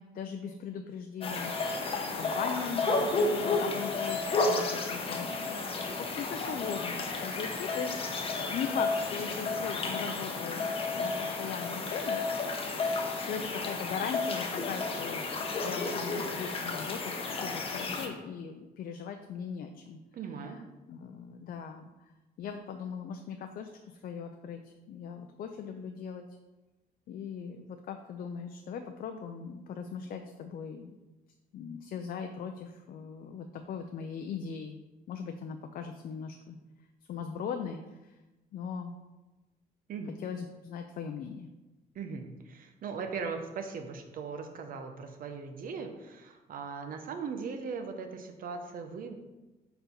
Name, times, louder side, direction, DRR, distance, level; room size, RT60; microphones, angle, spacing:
voice 1, 0.0-1.6 2.1-12.2 13.3-20.0 20.9-21.8 22.4-23.7 24.0-24.6 24.9-26.3 27.1-31.0 31.5-34.8 35.1-36.6 37.1-38.1 38.5-38.9 40.2-41.5, left 6 dB, 60° left, 5 dB, 0.4 m, -39 dB
sound 1, 1.2-18.1, left 3 dB, 35° left, 0.8 m, -32 dB
voice 2, 20.1-20.6 39.9-40.1 41.9-49.2, right 5 dB, 60° right, 6 dB, 0.8 m, -39 dB
4.5 x 4.4 x 5.2 m, 1.1 s
cardioid pair, 135°, 17 cm